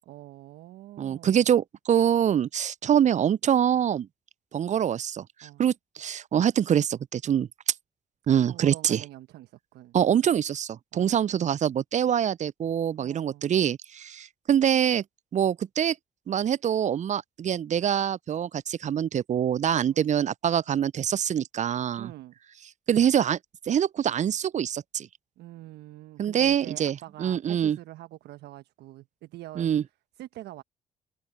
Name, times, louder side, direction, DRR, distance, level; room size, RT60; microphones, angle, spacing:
voice 1, 0.1-1.5 5.4-5.6 8.5-10.0 10.9-11.1 13.0-13.5 19.8-20.1 21.9-22.3 25.4-29.7 30.2-30.6, right 15 dB, 70° right, 1.2 m, -45 dB
voice 2, 1.0-4.1 4.5-7.7 8.3-9.0 9.9-15.0 15.3-16.0 16.3-22.1 22.9-23.4 23.7-25.1 26.2-27.8 29.6-29.8, right 9 dB, 40° right, 0.5 m, -25 dB
hypercardioid pair, 40°, 18 cm